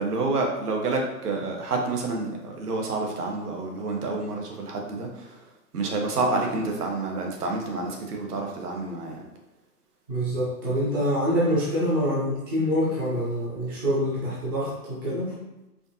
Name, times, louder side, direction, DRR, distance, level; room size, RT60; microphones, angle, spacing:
voice 1, 0.0-9.2, right 3 dB, 80° right, 1 dB, 1.2 m, -29 dB
voice 2, 10.1-15.3, equal, 15° right, -8 dB, 0.6 m, -25 dB
4.8 x 2.7 x 2.7 m, 1.0 s
hypercardioid pair, 160°, 45 cm